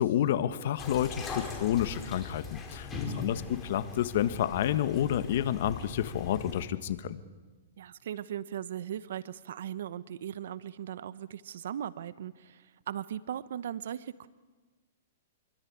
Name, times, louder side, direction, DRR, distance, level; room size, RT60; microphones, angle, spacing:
voice 1, 0.0-7.2, left 11 dB, 60° left, 12 dB, 1.5 m, -29 dB
sound 1, 0.8-6.7, left 5 dB, 20° left, 5.0 m, -40 dB
voice 2, 2.9-3.3 7.8-14.3, right 10 dB, 70° right, 17 dB, 0.9 m, -38 dB
26.0 x 23.5 x 8.8 m, 1.3 s
hypercardioid pair, 130°, 0 cm